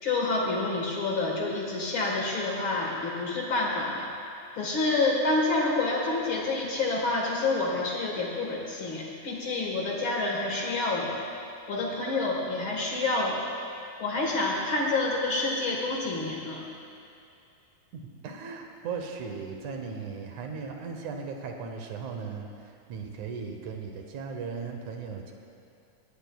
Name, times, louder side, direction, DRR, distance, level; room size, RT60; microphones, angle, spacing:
voice 1, 0.0-4.1 4.5-11.2 11.7-13.4 14.0-16.6, left 2 dB, 55° left, -2 dB, 1.4 m, -28 dB
voice 2, 17.9-25.3, right 5 dB, 70° right, 3 dB, 1.8 m, -37 dB
19.5 x 17.5 x 2.3 m, 2.5 s
omnidirectional pair, 4.5 m